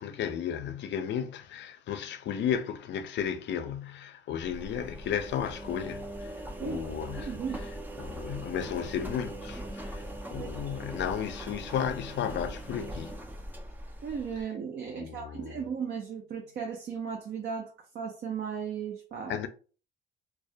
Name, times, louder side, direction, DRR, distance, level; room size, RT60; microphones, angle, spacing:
voice 1, 0.0-7.7 8.0-10.0 10.3-13.2 15.0-15.6 19.3-19.5, left 8 dB, 65° left, 0.4 m, -34 dB
Engine, 4.4-14.4, right 1 dB, 10° right, 0.4 m, -41 dB
voice 2, 7.2-7.6 10.4-10.8 14.0-19.4, right 6 dB, 60° right, 0.5 m, -36 dB
2.2 x 2.1 x 2.6 m
cardioid pair, 90°, 20 cm